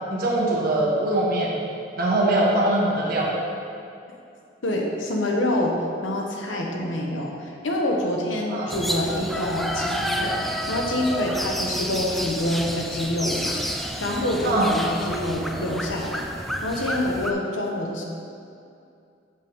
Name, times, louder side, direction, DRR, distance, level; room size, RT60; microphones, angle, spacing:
voice 1, 0.1-1.6 2.0-3.4 8.5-8.7 14.4-14.7, right 1 dB, 50° right, -3 dB, 1.4 m, -22 dB
voice 2, 4.6-18.0, left 1 dB, 90° left, 0 dB, 1.0 m, -27 dB
sound 1, 8.7-17.3, equal, ahead, 0.4 m, -30 dB
7.4 x 3.6 x 6.2 m, 2.5 s
head